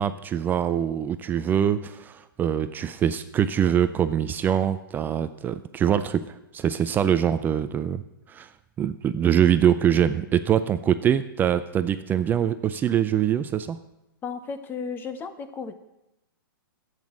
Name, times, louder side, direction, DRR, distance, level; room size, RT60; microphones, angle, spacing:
voice 1, 0.0-8.0 8.3-8.5 8.8-13.8, right 9 dB, 15° right, 12 dB, 0.4 m, -23 dB
voice 2, 14.2-15.7, left 5 dB, 15° left, 11 dB, 0.8 m, -34 dB
10.5 x 8.1 x 7.3 m, 0.88 s
hypercardioid pair, 135°, 12 cm